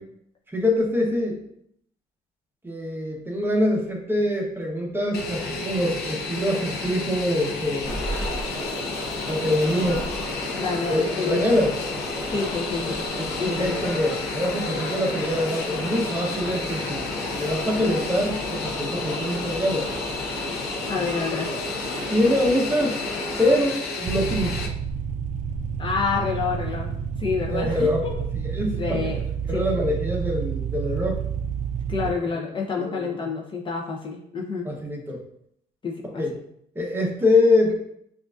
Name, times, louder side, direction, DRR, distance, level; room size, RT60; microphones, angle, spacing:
voice 1, 0.5-1.4 2.6-8.0 9.3-10.0 10.9-11.7 13.2-19.9 22.1-23.0 23.4-24.7 27.5-28.1 28.5-29.0 29.5-31.2 32.8-33.1 34.6-35.2 36.2-36.3 36.7-37.8, left 1 dB, 15° right, -1 dB, 0.8 m, -24 dB
Fixed-wing aircraft airplane, 5.1-24.7, left 3 dB, 70° left, 0.6 m, -32 dB
sound 1, 7.8-23.6, left 1 dB, 10° left, 1.6 m, -34 dB
voice 2, 10.6-11.6 12.3-13.1 13.4-13.8 20.9-21.5 25.8-26.9 27.2-28.2 28.7-29.2 29.5-29.6 31.9-34.7 35.8-36.2, left 5 dB, 30° left, 0 dB, 0.6 m, -28 dB
sound 2, 24.1-32.1, right 7 dB, 45° right, 0.4 m, -29 dB
6.0 x 2.5 x 2.4 m, 0.71 s
cardioid pair, 110°, 17 cm